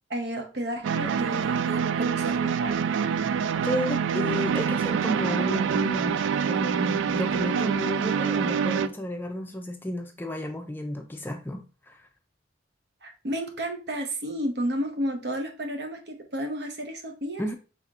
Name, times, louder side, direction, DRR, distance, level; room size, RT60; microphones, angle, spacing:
voice 1, 0.1-2.8 13.0-17.4, equal, 60° right, 5 dB, 0.8 m, -32 dB
sound 1, 0.8-8.9, right 7 dB, 90° right, 0.3 m, -26 dB
voice 2, 3.6-6.2 6.5-12.1 17.4-17.5, left 1 dB, 10° left, 5 dB, 0.4 m, -32 dB
5.6 x 3.5 x 2.4 m, 0.34 s
head